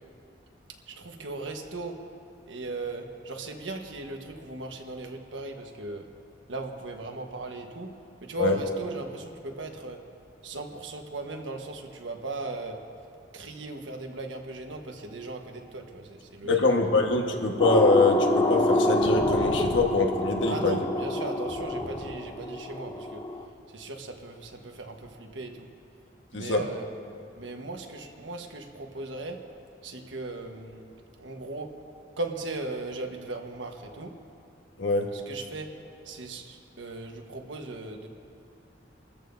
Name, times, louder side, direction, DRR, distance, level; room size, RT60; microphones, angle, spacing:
voice 1, 0.9-2.0 2.5-6.1 6.5-7.9 8.2-10.0 10.4-12.8 13.3-16.6 20.4-23.2 23.7-25.7 26.3-26.8 27.4-29.4 29.8-30.9 31.2-31.7 32.2-34.1 35.1-35.7 36.0-38.1, right 2 dB, 85° right, 3 dB, 1.3 m, -37 dB
voice 2, 16.4-20.8 26.3-26.6 34.8-35.1, left 3 dB, 90° left, 2 dB, 1.4 m, -24 dB
sound 1, 17.6-23.4, left 1 dB, 25° left, 0.7 m, -26 dB
27.0 x 14.0 x 2.7 m, 2.6 s
head